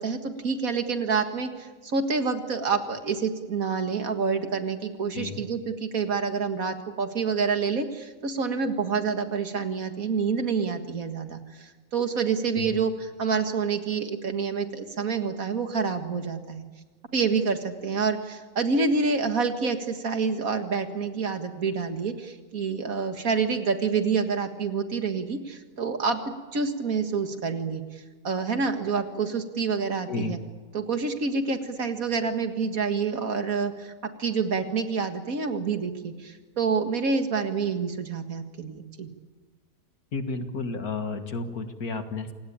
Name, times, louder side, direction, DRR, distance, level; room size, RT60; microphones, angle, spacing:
voice 1, 0.0-12.9 13.2-16.7 17.1-26.2 26.5-30.4 30.7-33.9 34.2-39.1, right 5 dB, 65° right, 7 dB, 2.2 m, -27 dB
voice 2, 40.1-42.3, left 4 dB, 75° left, 7 dB, 2.2 m, -32 dB
27.5 x 19.0 x 8.8 m, 1.4 s
omnidirectional pair, 1.6 m